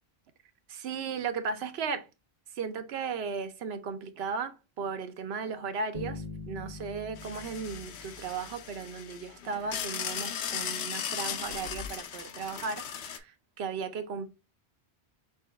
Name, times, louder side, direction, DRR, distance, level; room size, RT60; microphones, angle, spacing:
voice 1, 0.7-2.1 2.6-13.3 13.6-14.3, right 5 dB, 75° right, 0.9 m, -36 dB
Bass guitar, 5.9-9.0, left 3 dB, 50° left, 1.1 m, -43 dB
sound 1, 7.2-13.2, left 8 dB, 80° left, 0.9 m, -37 dB
6.1 x 2.2 x 3.3 m
omnidirectional pair, 1.1 m